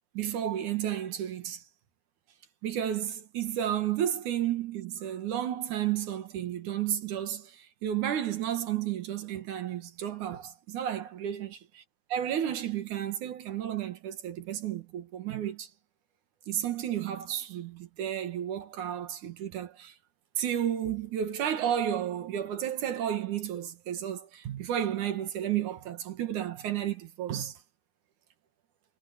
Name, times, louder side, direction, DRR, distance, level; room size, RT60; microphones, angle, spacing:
voice 1, 0.1-1.6 2.6-11.6 12.1-15.7 16.5-19.9 20.4-27.5, right 10 dB, 70° right, 2.9 m, -32 dB
omnidirectional pair, 3.8 m